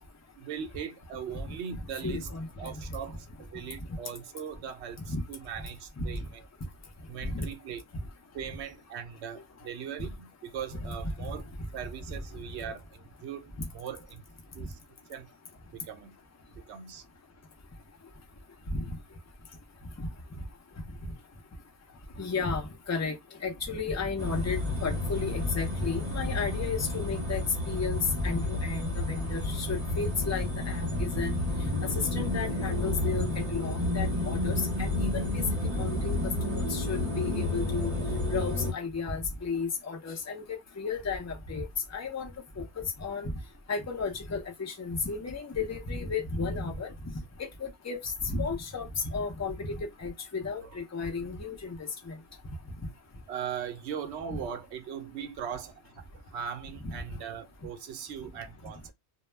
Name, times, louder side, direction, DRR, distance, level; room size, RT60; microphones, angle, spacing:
voice 1, 0.4-2.3 2.6-6.4 7.1-7.8 8.3-11.4 11.7-14.2 14.5-14.8 15.1-15.3 15.7-16.1 16.7-17.0 50.6-50.8 53.3-58.9, right 8 dB, 75° right, 0.8 m, -40 dB
voice 2, 2.0-2.7 5.1-5.2 6.0-6.2 7.2-7.5 11.2-11.3 18.7-18.9 20.0-20.1 22.2-23.2 23.4-31.4 32.1-35.4 35.8-37.9 38.3-42.3 42.6-43.3 43.7-46.9 47.4-52.2 54.3-54.4 56.8-56.9, left 4 dB, 25° left, 0.3 m, -33 dB
sound 1, 24.2-38.7, left 2 dB, 40° right, 0.8 m, -31 dB
2.3 x 2.0 x 3.2 m
omnidirectional pair, 1.2 m